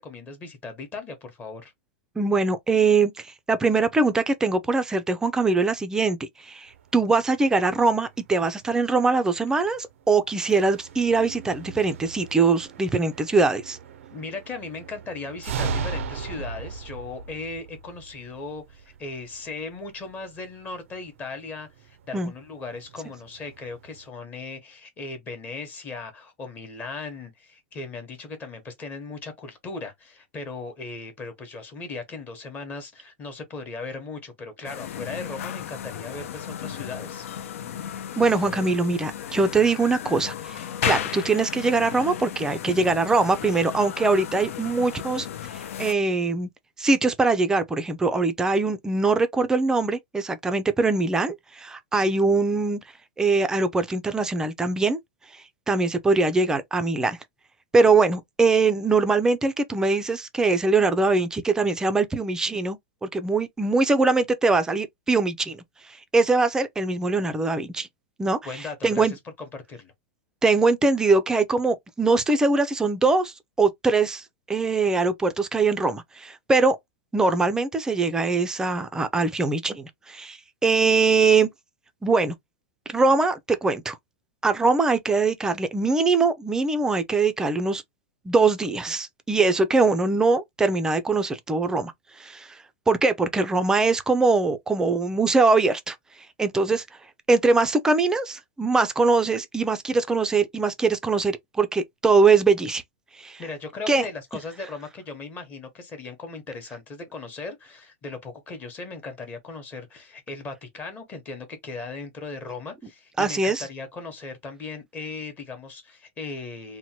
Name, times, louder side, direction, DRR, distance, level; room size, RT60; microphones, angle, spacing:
voice 1, 0.0-1.7 14.1-37.3 68.4-69.9 103.4-116.8, left 3 dB, 25° left, 0.9 m, -37 dB
voice 2, 2.2-13.8 22.1-22.3 38.2-45.3 45.8-46.5 46.8-52.8 53.2-55.0 55.7-57.2 57.7-65.6 66.1-67.9 68.2-68.4 68.8-69.1 70.4-76.8 77.1-81.5 82.0-82.3 82.9-84.0 84.4-87.8 88.3-92.6 92.9-96.0 96.4-96.8 97.3-102.8 103.2-103.4 103.9-104.0 113.2-113.7, right 3 dB, 10° right, 0.4 m, -22 dB
sound 1, 6.7-24.1, right 5 dB, 85° right, 0.4 m, -39 dB
sound 2, 34.6-45.9, left 9 dB, 85° left, 0.4 m, -34 dB
2.9 x 2.1 x 2.8 m
supercardioid pair, 140°, 7 cm